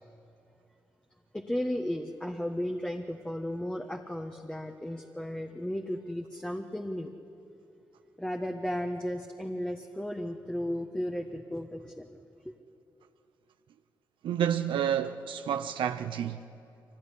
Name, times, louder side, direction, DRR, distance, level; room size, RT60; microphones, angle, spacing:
voice 1, 1.3-7.1 8.2-12.1 12.4-12.5, left 1 dB, 10° left, 1.4 m, -34 dB
voice 2, 14.2-16.4, right 9 dB, 80° right, 0.6 m, -29 dB
23.0 x 18.0 x 10.0 m
supercardioid pair, 50°, 8 cm